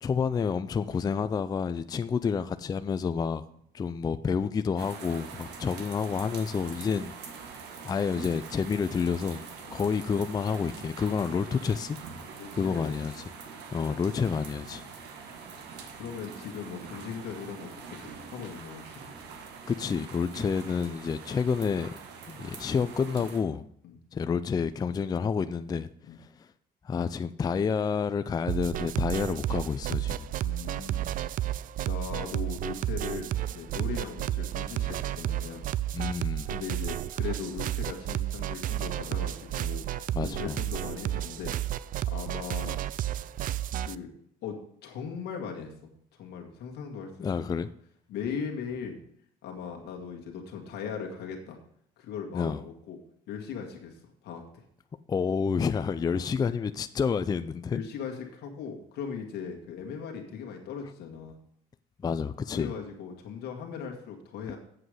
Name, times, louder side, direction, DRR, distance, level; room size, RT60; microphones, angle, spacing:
voice 1, 0.0-3.4 3.7-7.1 7.8-9.4 9.7-12.0 12.5-13.3 13.7-14.8 19.7-21.9 22.3-23.7 24.1-25.9 26.2-26.3 26.8-30.3 35.9-36.5 40.1-40.6 47.2-47.7 52.3-52.6 55.1-57.8 62.0-62.7, left 6 dB, 25° left, 0.4 m, -29 dB
sound 1, 4.8-23.4, right 5 dB, 85° right, 1.6 m, -44 dB
voice 2, 12.4-13.0 13.8-14.1 15.9-19.0 23.8-24.0 26.1-26.2 30.4-31.1 31.8-35.6 36.5-39.9 40.2-41.6 42.1-42.8 43.8-44.1 44.4-45.7 46.2-47.6 48.1-49.0 49.4-51.6 52.0-53.0 53.3-54.0 54.2-54.6 56.1-56.3 57.7-61.3 62.5-64.6, left 6 dB, 75° left, 1.7 m, -39 dB
sound 2, 28.5-44.0, right 12 dB, 55° right, 0.4 m, -32 dB
7.8 x 7.7 x 4.9 m
cardioid pair, 110°, 17 cm